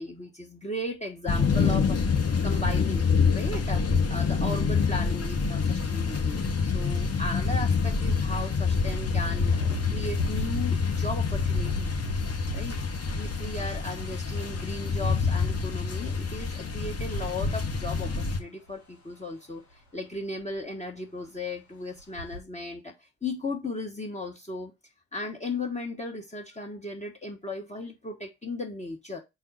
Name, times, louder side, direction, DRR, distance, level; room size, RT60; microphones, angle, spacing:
voice 1, 0.0-2.0 2.4-11.9 12.5-12.8 13.2-24.7 25.1-29.2, left 2 dB, 15° left, 1.3 m, -36 dB
sound 1, 1.3-18.4, left 5 dB, 35° left, 1.6 m, -27 dB
Engine, 7.0-7.1 7.6-7.7 8.9-14.7 15.6-15.7 16.2-16.9 18.7-18.8 19.2-19.3 19.7-19.8 20.2-20.7 21.2-21.3 21.9-22.4, left 1 dB, 85° left, 1.4 m, -37 dB
4.6 x 4.2 x 5.6 m
figure-of-eight pair, 45°, 43 cm